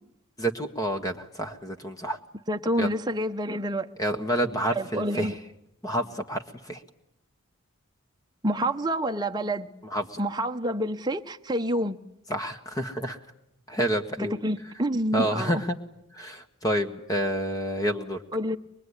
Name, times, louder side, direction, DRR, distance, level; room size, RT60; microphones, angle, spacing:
voice 1, 0.4-2.2 2.8-2.9 4.0-5.4 5.8-6.8 9.8-10.2 12.3-13.2 13.7-14.4 15.1-15.8 16.1-18.2, equal, 15° left, 1.5 m, -29 dB
voice 2, 2.5-3.9 4.8-5.3 8.4-9.7 10.2-12.0 14.2-15.5 18.3-18.6, right 1 dB, 20° right, 0.9 m, -28 dB
23.5 x 22.0 x 9.8 m
head